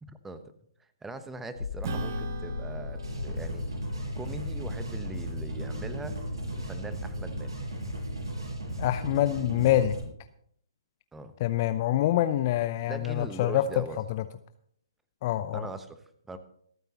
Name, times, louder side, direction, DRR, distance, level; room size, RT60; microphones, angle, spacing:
voice 1, 0.0-0.4 1.0-3.6 4.2-6.2 6.5-7.6 11.1-11.3 12.9-14.0 15.5-16.0 16.3-16.4, right 2 dB, 10° right, 11 dB, 1.0 m, -41 dB
sound 1, 1.5-9.0, left 4 dB, 75° left, 0.7 m, -40 dB
Acoustic guitar / Strum, 1.8-6.6, right 2 dB, 45° right, 1.4 m, -41 dB
sound 2, 3.0-10.0, right 1 dB, 75° right, 6.9 m, -36 dB
voice 2, 8.8-10.0 11.4-13.6 14.1-14.2 15.2-15.7, left 13 dB, 40° left, 11 dB, 0.6 m, -26 dB
26.5 x 9.2 x 3.0 m, 0.66 s
figure-of-eight pair, 130°, 3 cm